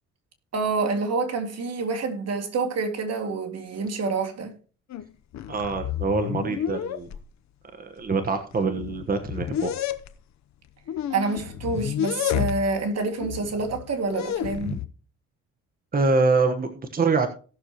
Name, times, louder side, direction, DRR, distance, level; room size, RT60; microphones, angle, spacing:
voice 1, 0.5-4.5 11.1-14.7, right 4 dB, 55° right, 2.3 m, -27 dB
sound 1, 4.9-5.1 5.3-7.2 8.0-8.1 8.5-10.1 10.9-12.8 13.2-14.9, left 11 dB, 65° left, 0.9 m, -30 dB
voice 2, 5.5-7.1 7.8-9.7 15.9-17.3, right 4 dB, 30° right, 1.3 m, -24 dB
18.0 x 6.6 x 3.0 m
cardioid pair, 90°, 30 cm